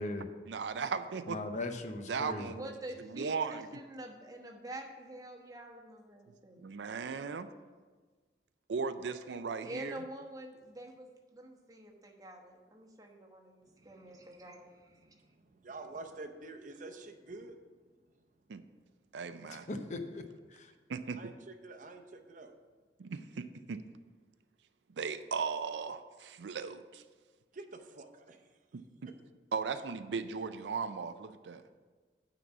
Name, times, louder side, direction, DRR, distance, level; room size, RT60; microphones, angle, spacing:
voice 1, 0.5-1.4 2.1-2.7 3.0-3.7 6.6-7.5 8.7-10.0 18.5-18.6 19.1-19.7 20.9-21.2 23.0-23.8 25.0-27.0 28.7-29.1 29.5-31.6, right 5 dB, 85° right, 10 dB, 0.4 m, -37 dB
voice 2, 1.3-2.5 19.5-20.2 20.5-20.7, left 2 dB, 45° left, 7 dB, 0.7 m, -39 dB
voice 3, 2.5-6.6 9.6-15.0, right 1 dB, 20° right, 0 dB, 1.1 m, -47 dB
voice 4, 13.7-14.2 15.0-17.6 21.1-22.5 27.5-28.4, right 2 dB, 45° right, 5 dB, 0.7 m, -48 dB
9.2 x 4.0 x 6.9 m, 1.4 s
head